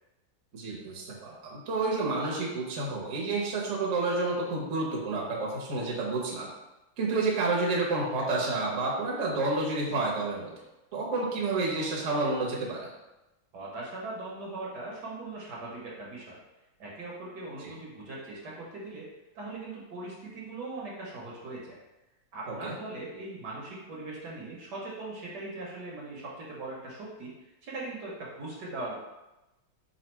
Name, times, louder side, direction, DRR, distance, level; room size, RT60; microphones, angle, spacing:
voice 1, 0.5-6.5 7.0-10.5 10.9-12.8 17.6-17.7 22.5-22.7, right 3 dB, 50° right, -4 dB, 1.0 m, -30 dB
voice 2, 13.5-16.4 16.8-19.0 19.3-21.7 22.3-27.3 27.6-29.0, right 2 dB, 65° right, -4 dB, 1.4 m, -40 dB
4.1 x 2.4 x 4.4 m, 1.0 s
omnidirectional pair, 2.1 m